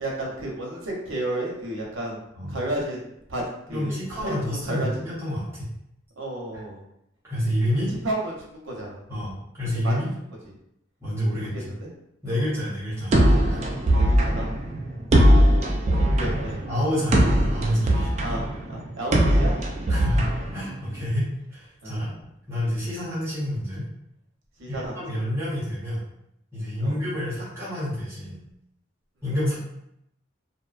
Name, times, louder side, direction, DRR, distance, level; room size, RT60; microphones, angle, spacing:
voice 1, 0.0-2.2 2.5-4.9 6.2-6.8 7.9-9.0 9.8-10.0 10.4-10.5 11.4-11.9 12.2-12.5 13.9-14.5 16.0-16.6 17.1-17.3 18.2-19.5 21.8-22.1 24.6-25.2 26.8-27.0, right 1 dB, 85° right, -1 dB, 0.7 m, -32 dB
voice 2, 3.7-5.7 7.2-7.9 9.1-10.1 11.0-11.5 12.2-13.1 13.5-13.6 16.7-18.1 19.3-19.4 19.9-22.1 22.5-23.9 24.7-26.0 26.5-28.4 29.2-29.5, equal, 15° right, -10 dB, 0.8 m, -28 dB
sound 1, 13.1-21.0, equal, 35° right, 0.3 m, -20 dB
2.6 x 2.1 x 2.4 m, 0.78 s
head